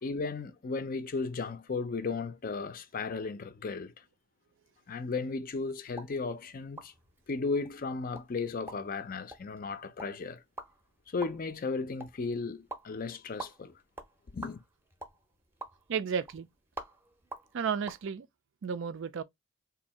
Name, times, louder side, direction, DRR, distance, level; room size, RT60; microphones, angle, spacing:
voice 1, 0.0-4.0 4.9-6.9 7.3-10.4 11.1-13.7 14.3-14.6, left 4 dB, 45° left, 0.5 m, -35 dB
pop mouth cartoon, 5.9-18.0, right 2 dB, 10° right, 0.6 m, -49 dB
voice 2, 15.9-16.5 17.5-18.3 18.6-19.2, right 6 dB, 65° right, 0.4 m, -33 dB
2.7 x 2.5 x 4.1 m
head